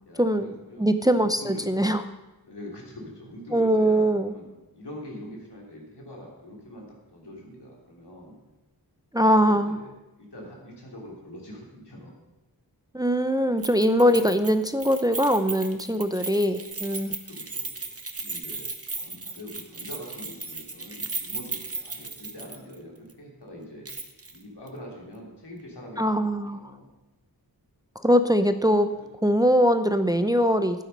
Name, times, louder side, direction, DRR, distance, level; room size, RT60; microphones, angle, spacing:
voice 1, 0.0-1.8 2.4-6.9 7.1-8.3 9.2-9.9 10.2-12.1 17.1-18.7 18.9-23.9 24.3-26.9 28.9-29.1, left 1 dB, 90° left, -2 dB, 3.2 m, -43 dB
voice 2, 0.8-2.0 3.5-4.3 9.1-9.8 12.9-17.1 26.0-26.6 28.0-28.9 29.2-30.8, equal, 10° right, 9 dB, 0.6 m, -22 dB
Keys jangling, 13.6-22.8 23.1-23.2 23.8-24.4 24.7-24.8, right 3 dB, 35° right, 1.1 m, -36 dB
12.0 x 9.3 x 5.4 m, 1.0 s
wide cardioid pair, 65°, 39 cm